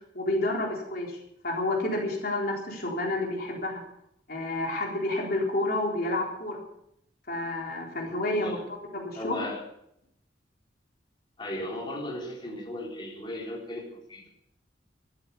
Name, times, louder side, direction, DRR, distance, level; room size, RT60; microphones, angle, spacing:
voice 1, 0.1-1.2 1.4-3.8 4.3-6.6 7.3-8.6 8.9-9.4, left 2 dB, 55° left, -1 dB, 3.9 m, -29 dB
voice 2, 8.2-8.6 9.2-9.6 11.4-14.3, left 1 dB, 25° left, -2 dB, 3.9 m, -36 dB
14.0 x 13.5 x 7.1 m, 0.77 s
head